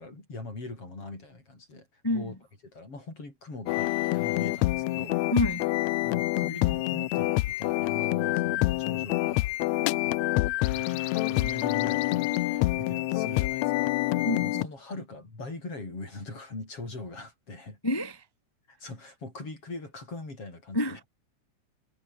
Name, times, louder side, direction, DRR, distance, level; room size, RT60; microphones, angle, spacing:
voice 1, 0.0-2.4 2.7-5.2 6.0-9.5 10.0-17.8 18.7-21.1, left 2 dB, 50° left, 8.9 m, -41 dB
voice 2, 2.0-2.4 5.3-5.7 9.8-10.0 14.2-14.7 17.8-18.2 20.7-21.0, left 1 dB, 15° left, 0.7 m, -28 dB
sound 1, 3.7-14.6, left 18 dB, 75° left, 1.8 m, -27 dB
omnidirectional pair, 3.3 m